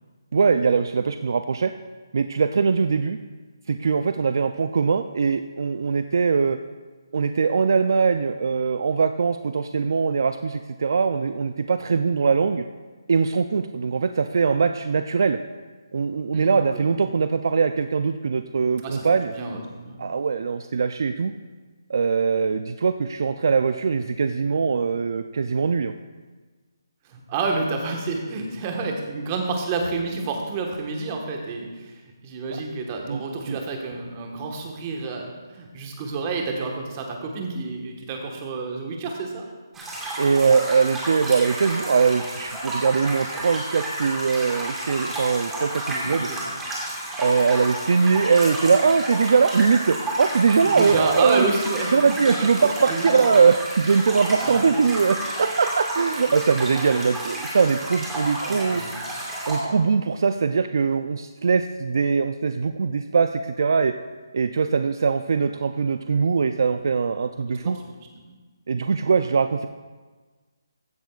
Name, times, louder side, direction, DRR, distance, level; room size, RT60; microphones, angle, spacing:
voice 1, 0.3-1.7 2.1-3.2 3.7-6.6 7.1-12.6 13.1-15.4 15.9-19.3 20.0-21.3 21.9-25.9 33.1-33.6 40.2-46.3 47.2-51.5 51.9-58.8 59.5-63.9 64.3-67.8 68.7-69.7, right 5 dB, 60° right, 9 dB, 0.4 m, -21 dB
voice 2, 16.3-16.8 18.8-20.0 27.1-39.4 45.8-46.5 50.6-52.5 52.9-53.1 53.4-53.5 54.4-54.7 58.4-59.0 67.4-68.0 68.3-68.4, right 3 dB, 25° right, 2 dB, 1.4 m, -30 dB
sound 1, 39.7-59.6, right 1 dB, 10° right, 1.6 m, -31 dB
15.0 x 10.5 x 2.4 m, 1.4 s
hypercardioid pair, 160°, 2 cm